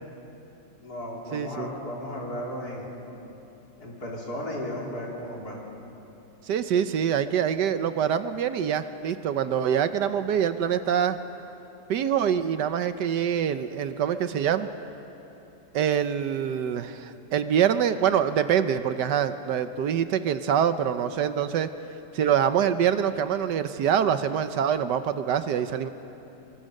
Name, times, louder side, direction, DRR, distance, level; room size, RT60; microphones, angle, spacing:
voice 1, 0.8-3.0 3.8-5.6, left 1 dB, 55° left, -3 dB, 4.4 m, -35 dB
voice 2, 1.3-1.7 6.5-11.2 11.9-14.7 15.7-21.7 22.1-25.9, right 8 dB, 75° right, 11 dB, 1.4 m, -25 dB
24.0 x 23.5 x 6.6 m, 2.9 s
omnidirectional pair, 1.9 m